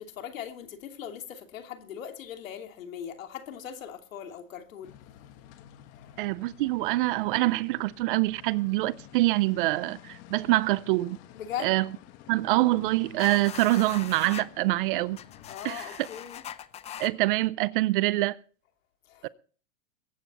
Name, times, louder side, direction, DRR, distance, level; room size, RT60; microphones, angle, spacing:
voice 1, 0.0-4.9 5.9-6.2 11.3-11.8 15.5-16.4 19.1-19.3, left 9 dB, 75° left, 3.0 m, -40 dB
sound 1, 4.8-15.6, left 11 dB, 40° left, 1.6 m, -51 dB
voice 2, 6.2-11.2 11.6-11.9 12.3-15.2 15.6-16.1 17.0-18.4 19.2-19.3, right 19 dB, 40° right, 0.6 m, -25 dB
sound 2, 13.2-14.5 15.1-17.1, left 10 dB, 15° left, 0.7 m, -41 dB
22.5 x 9.2 x 4.2 m
hypercardioid pair, 135°, 41 cm